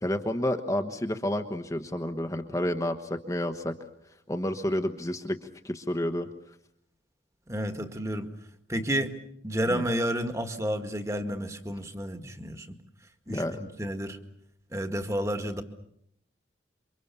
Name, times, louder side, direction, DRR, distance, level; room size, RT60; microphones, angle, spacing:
voice 1, 0.0-3.7 4.3-5.4 5.6-6.3 9.7-9.8 13.3-13.6, left 1 dB, 15° left, 6 dB, 1.2 m, -30 dB
voice 2, 7.5-8.3 8.7-9.2 9.4-12.8 13.3-14.2 14.7-15.6, equal, 15° right, 8 dB, 1.9 m, -31 dB
28.0 x 25.0 x 7.0 m, 0.74 s
head